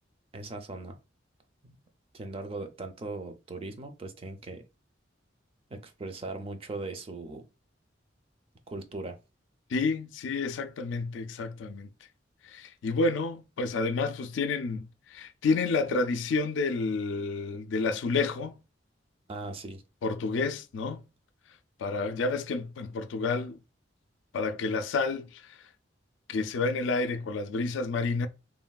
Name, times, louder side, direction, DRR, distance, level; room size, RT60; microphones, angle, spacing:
voice 1, 0.3-1.0 1.6-1.8 2.1-4.6 5.7-7.4 8.7-9.2 19.3-19.8, right 2 dB, 30° right, 0.4 m, -39 dB
voice 2, 9.7-11.9 12.4-18.5 20.0-21.0 21.8-23.6 24.3-25.6 26.3-28.3, left 3 dB, 75° left, 0.3 m, -30 dB
3.1 x 2.2 x 2.3 m
head